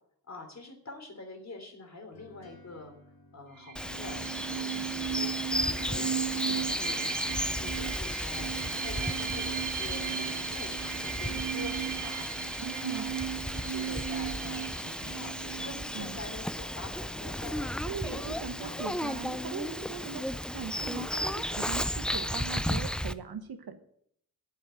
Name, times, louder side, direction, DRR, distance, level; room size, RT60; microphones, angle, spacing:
voice 1, 0.3-2.9 3.3-4.3 4.5-5.3 5.6-12.3 12.9-18.7, left 3 dB, 45° left, 3 dB, 3.3 m, -46 dB
sound 1, 2.1-18.4, left 4 dB, 85° left, 1.8 m, -55 dB
sound 2, 3.6-17.0, right 9 dB, 60° right, 1.0 m, -36 dB
Bird vocalization bird call bird song, 3.8-23.1, equal, 5° left, 0.4 m, -34 dB
voice 2, 12.6-13.0 15.9-16.2 17.9-20.2 20.5-23.8, right 6 dB, 90° right, 7 dB, 1.5 m, -39 dB
9.9 x 7.7 x 9.2 m, 0.68 s
wide cardioid pair, 110°, 36 cm